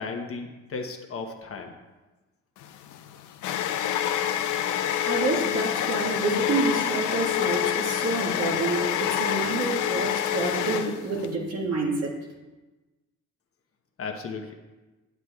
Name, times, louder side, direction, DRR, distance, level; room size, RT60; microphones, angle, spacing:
voice 1, 0.0-1.7 14.0-14.5, left 4 dB, 50° left, 3 dB, 0.9 m, -35 dB
sound 1, 2.6-11.3, left 10 dB, 80° left, 0.5 m, -27 dB
voice 2, 5.0-12.1, right 3 dB, 55° right, -1 dB, 1.7 m, -28 dB
9.2 x 8.2 x 2.3 m, 1.2 s
cardioid pair, 90°, 30 cm